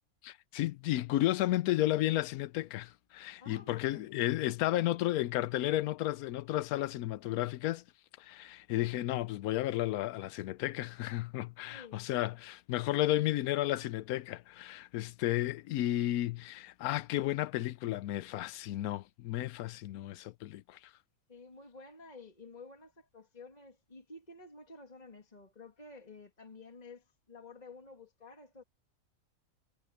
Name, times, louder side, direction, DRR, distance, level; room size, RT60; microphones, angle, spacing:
voice 1, 0.2-7.8 8.2-20.8, left 15 dB, 85° left, 1.1 m, -33 dB
voice 2, 3.4-4.0 11.7-12.1 21.3-28.6, left 3 dB, 30° left, 2.1 m, -52 dB
omnidirectional pair, 1.5 m